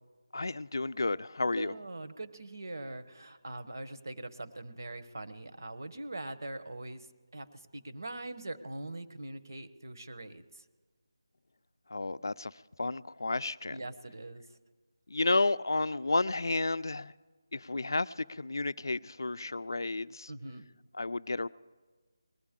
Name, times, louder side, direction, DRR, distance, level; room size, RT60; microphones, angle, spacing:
voice 1, 0.3-1.7 11.9-12.5 12.8-13.8 15.1-17.1 17.5-20.3 21.0-21.5, left 2 dB, 70° left, 18 dB, 0.4 m, -31 dB
voice 2, 1.6-7.1 7.3-10.7 13.7-14.4 20.3-20.6, right 2 dB, 55° right, 10 dB, 1.1 m, -42 dB
21.0 x 14.0 x 3.7 m, 1.3 s
figure-of-eight pair, 175°, 2 cm